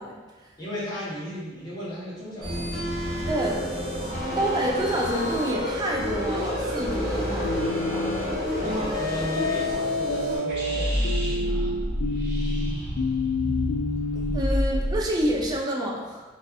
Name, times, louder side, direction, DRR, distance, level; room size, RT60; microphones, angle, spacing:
voice 1, 0.0-0.5 3.3-3.6 4.4-7.6 8.6-9.1 14.1-16.2, right 1 dB, 20° right, -2 dB, 0.3 m, -28 dB
voice 2, 0.6-2.9 4.5-4.6 8.6-11.8, left 1 dB, 20° left, -10 dB, 0.9 m, -36 dB
sound 1, 2.4-10.4, left 1 dB, ahead, 1.2 m, -29 dB
sound 2, 7.4-8.3 9.4-14.4, left 3 dB, 85° left, 0.3 m, -28 dB
sound 3, 10.5-15.6, equal, 60° right, 0.8 m, -28 dB
2.6 x 2.3 x 2.3 m, 1.3 s
head